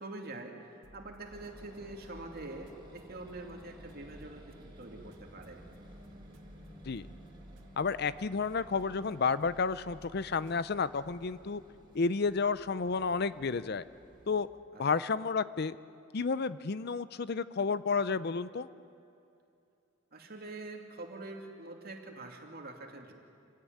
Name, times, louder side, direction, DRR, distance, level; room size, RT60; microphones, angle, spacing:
voice 1, 0.0-5.6 14.7-14.8 20.1-23.1, right 2 dB, 50° right, 2 dB, 2.8 m, -45 dB
sound 1, 0.8-10.6, equal, 70° right, 2.3 m, -58 dB
sound 2, 1.3-14.4, equal, 25° right, 6.0 m, -54 dB
voice 2, 7.8-11.6 11.9-13.8 14.3-14.5 14.8-15.8 16.1-18.7, left 4 dB, 50° left, 15 dB, 0.5 m, -31 dB
27.0 x 16.5 x 9.5 m, 2.7 s
head